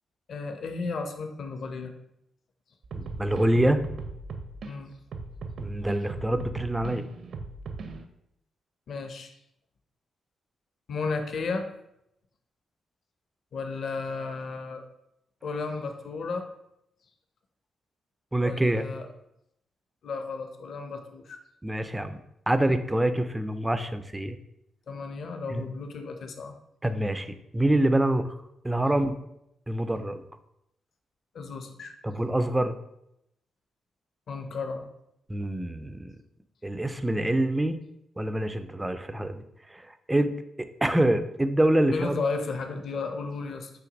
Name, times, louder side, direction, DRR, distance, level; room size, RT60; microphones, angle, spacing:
voice 1, 0.3-1.9 4.6-4.9 8.9-9.3 10.9-11.7 13.5-14.8 15.4-16.5 18.4-19.1 20.0-21.4 24.9-26.5 28.9-29.0 31.3-31.9 34.3-34.9 41.9-43.7, left 4 dB, 50° left, 6 dB, 0.7 m, -33 dB
sound 1, 2.8-4.7 5.1-8.0, right 3 dB, 50° right, 0.6 m, -38 dB
voice 2, 2.9-3.8 5.6-7.0 18.3-18.9 21.6-22.2 22.5-24.4 25.5-25.6 26.8-28.3 28.6-29.2 29.7-30.2 32.0-32.7 35.3-36.1 36.6-37.8 38.2-42.2, right 1 dB, 10° right, 10 dB, 0.4 m, -26 dB
5.8 x 3.3 x 5.1 m, 0.81 s
wide cardioid pair, 165°, 0 cm